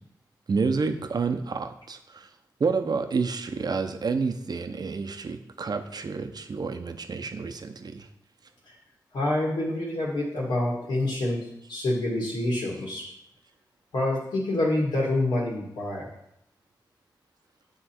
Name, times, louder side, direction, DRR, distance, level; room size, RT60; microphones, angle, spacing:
voice 1, 0.5-2.3 2.6-8.1, right 4 dB, 60° right, 7 dB, 0.7 m, -29 dB
voice 2, 9.1-11.4 11.7-13.0 13.9-16.0, left 1 dB, 80° left, -4 dB, 1.9 m, -27 dB
9.0 x 3.7 x 4.4 m, 0.78 s
cardioid pair, 45°, 8 cm